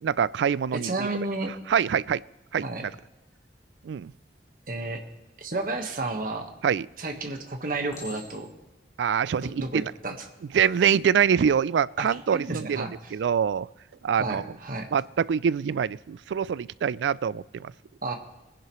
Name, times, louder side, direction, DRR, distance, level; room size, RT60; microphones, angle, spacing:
voice 1, 0.0-1.1 1.7-2.2 2.5-2.9 3.8-4.1 6.6-6.9 9.0-9.9 10.5-13.7 14.0-14.4 14.9-17.7, right 7 dB, 85° right, 20 dB, 0.3 m, -25 dB
voice 2, 0.7-1.5 2.6-2.8 4.7-5.0 5.4-6.5 7.0-8.5 9.4-10.2 12.0-13.1 14.2-14.9 18.0-18.2, right 2 dB, 50° right, 4 dB, 1.4 m, -32 dB
Chink clink, 7.9-8.7 9.4-9.7, left 2 dB, 20° left, 3.8 m, -45 dB
21.0 x 10.5 x 3.1 m, 1.1 s
head